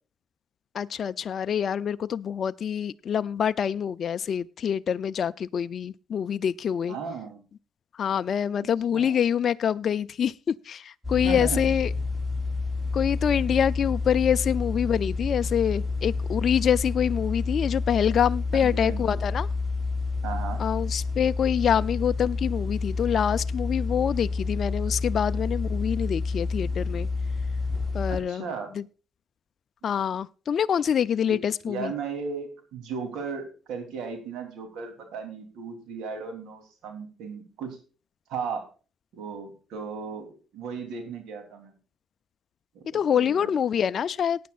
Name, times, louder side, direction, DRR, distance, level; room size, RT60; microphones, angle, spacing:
voice 1, 0.7-7.0 8.0-10.3 10.7-11.9 12.9-19.5 20.6-27.1 27.9-28.4 28.7-28.8 29.8-31.9 42.9-44.4, left 8 dB, 55° left, 0.4 m, -26 dB
voice 2, 6.9-7.4 8.9-9.2 11.1-11.6 18.5-19.2 20.2-20.6 28.1-28.7 31.3-31.4 31.6-37.8 38.3-38.6 39.1-41.7 42.7-43.5, right 5 dB, 85° right, 3.2 m, -36 dB
sound 1, 11.0-28.2, left 3 dB, ahead, 3.6 m, -29 dB
19.0 x 9.3 x 2.4 m
cardioid pair, 90°, 0 cm